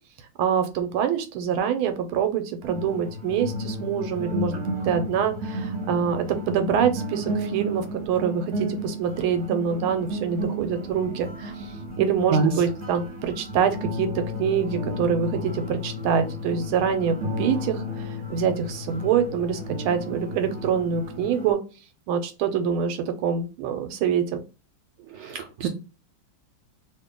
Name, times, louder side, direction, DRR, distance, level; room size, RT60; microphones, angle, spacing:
voice 1, 0.4-11.7 12.0-14.1 14.4-21.6 22.1-24.4, right 7 dB, 90° right, 8 dB, 1.5 m, -25 dB
sound 1, 2.6-21.5, equal, 45° right, 1.0 m, -33 dB
voice 2, 25.1-25.7, right 5 dB, 75° right, 5 dB, 1.2 m, -24 dB
3.1 x 2.7 x 3.6 m, 0.31 s
omnidirectional pair, 2.2 m